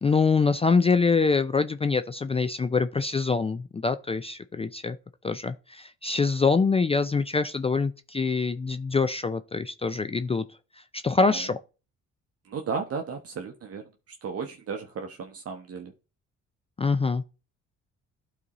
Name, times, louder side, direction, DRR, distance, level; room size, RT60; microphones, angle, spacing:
voice 1, 0.0-5.0 5.2-10.4 11.0-11.6 16.8-17.2, left 4 dB, 20° left, 0.4 m, -24 dB
voice 2, 12.5-13.8 14.2-15.9, right 5 dB, 50° right, 0.9 m, -34 dB
12.0 x 4.1 x 3.0 m
cardioid pair, 90°, 30 cm